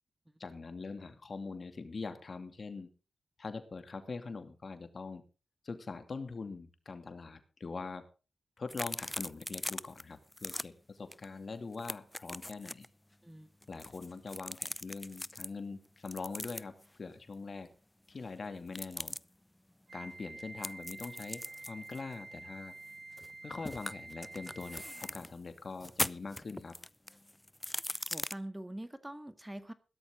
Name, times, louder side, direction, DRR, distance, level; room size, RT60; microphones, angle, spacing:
voice 1, 0.4-2.9 3.4-5.2 5.6-8.0 8.6-12.9 13.7-17.7 18.1-19.1 19.9-22.8 23.4-26.7, left 4 dB, 55° left, 9 dB, 2.5 m, -43 dB
sound 1, 8.7-10.0 10.3-10.6 11.1-11.2 11.5-12.9 13.6-15.5 16.1-16.9 18.7-19.2 20.6-23.3 23.6-25.3 25.8-28.3, left 1 dB, 15° left, 0.6 m, -40 dB
Wind instrument woodwind instrument, 19.9-25.2, right 2 dB, 70° right, 4.1 m, -49 dB
voice 2, 28.1-29.7, right 1 dB, 15° right, 11 dB, 1.8 m, -44 dB
16.5 x 12.5 x 3.8 m, 0.33 s
cardioid pair, 45°, 0 cm